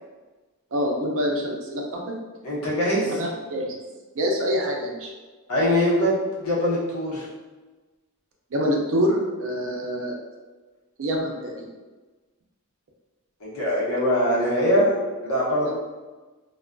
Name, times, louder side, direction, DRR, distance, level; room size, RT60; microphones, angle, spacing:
voice 1, 0.7-2.1 3.1-3.8 4.2-5.1 8.5-10.2 11.0-11.7 15.6-15.7, equal, 60° right, 0 dB, 0.5 m, -26 dB
voice 2, 2.4-3.2 5.5-7.3 13.4-14.9 15.2-15.7, equal, 70° left, -7 dB, 0.9 m, -22 dB
2.4 x 2.3 x 2.2 m, 1.3 s
head